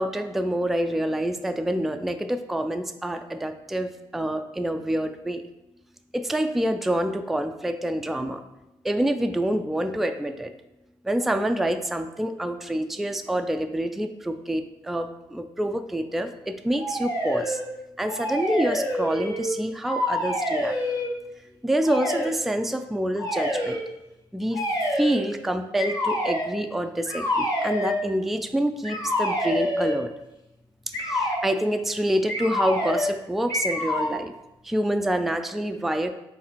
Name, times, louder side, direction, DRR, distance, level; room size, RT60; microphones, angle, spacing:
voice 1, 0.0-5.5 6.1-8.4 8.8-10.5 11.0-17.6 18.0-20.8 21.6-23.8 24.3-24.6 25.0-30.1 31.0-34.3 34.6-36.1, right 1 dB, ahead, 7 dB, 0.3 m, -27 dB
sound 1, 16.8-17.6 18.0-19.5 19.8-21.1 21.8-22.3 23.2-23.8 24.5-25.3 25.8-26.5 27.1-28.0 28.8-30.0 30.9-31.4 32.3-33.2 33.5-34.2, left 1 dB, 30° left, 1.4 m, -27 dB
4.7 x 3.3 x 3.0 m, 0.92 s
hypercardioid pair, 40°, 13 cm